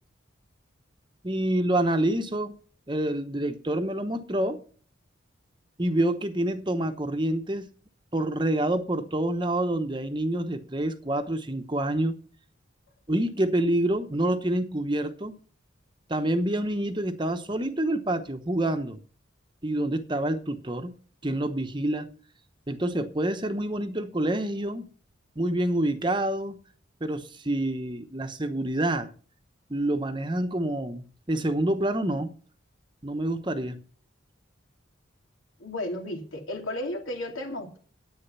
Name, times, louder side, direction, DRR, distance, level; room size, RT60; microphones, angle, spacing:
voice 1, 1.2-2.5 2.9-4.6 5.8-7.7 8.1-12.1 13.1-15.3 16.1-19.0 19.6-20.9 21.2-22.1 22.7-24.9 25.4-26.6 27.0-29.1 29.7-32.3 33.0-33.8, right 1 dB, 25° right, 0.9 m, -27 dB
voice 2, 35.6-37.8, left 1 dB, 85° left, 2.9 m, -33 dB
10.0 x 8.9 x 5.6 m
head